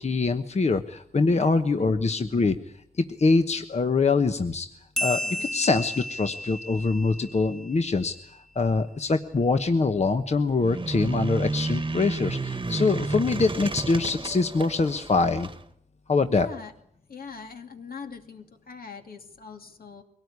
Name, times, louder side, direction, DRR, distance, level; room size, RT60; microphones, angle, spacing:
voice 1, 0.0-2.6 3.0-4.7 5.0-15.5 16.1-16.5, left 3 dB, 45° left, 7 dB, 1.1 m, -24 dB
voice 2, 1.3-1.6 5.2-5.5 16.3-16.7 17.1-20.0, left 5 dB, 75° left, 5 dB, 2.6 m, -42 dB
sound 1, 5.0-8.0, equal, 5° left, 2.0 m, -33 dB
sound 2, 10.6-15.6, right 3 dB, 30° right, 1.3 m, -31 dB
23.0 x 18.0 x 9.6 m, 0.68 s
wide cardioid pair, 95°, 15 cm